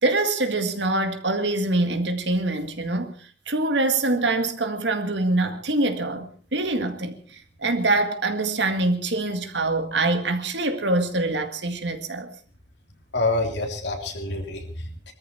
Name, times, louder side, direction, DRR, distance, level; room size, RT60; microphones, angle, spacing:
voice 1, 0.0-3.1 3.5-12.3, right 2 dB, 75° right, 2.0 m, -24 dB
voice 2, 13.1-15.1, left 2 dB, 75° left, 3.3 m, -27 dB
22.5 x 14.0 x 4.5 m
head